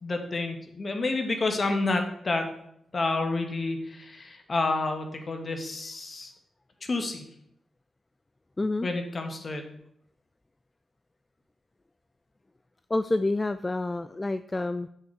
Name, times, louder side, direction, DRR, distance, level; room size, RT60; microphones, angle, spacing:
voice 1, 0.0-2.5 2.9-6.3 6.8-7.2 8.8-9.7, left 3 dB, 45° left, 5 dB, 1.6 m, -29 dB
voice 2, 8.6-8.9 12.9-14.9, left 2 dB, 25° left, 11 dB, 0.4 m, -28 dB
6.7 x 6.6 x 4.8 m, 0.72 s
cardioid pair, 55°, 0 cm